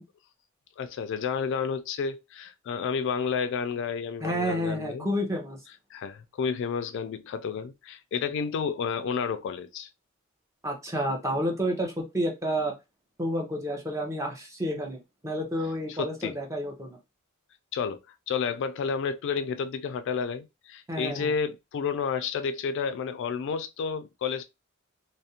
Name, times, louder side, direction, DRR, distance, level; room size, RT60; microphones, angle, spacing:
voice 1, 0.8-5.1 5.9-9.9 15.9-16.4 17.7-18.0 18.3-24.4, left 6 dB, 60° left, 0.3 m, -31 dB
voice 2, 4.2-5.6 10.6-12.7 13.2-15.0 15.2-17.0 20.9-21.3, equal, 15° right, 0.6 m, -30 dB
2.4 x 2.0 x 2.7 m
head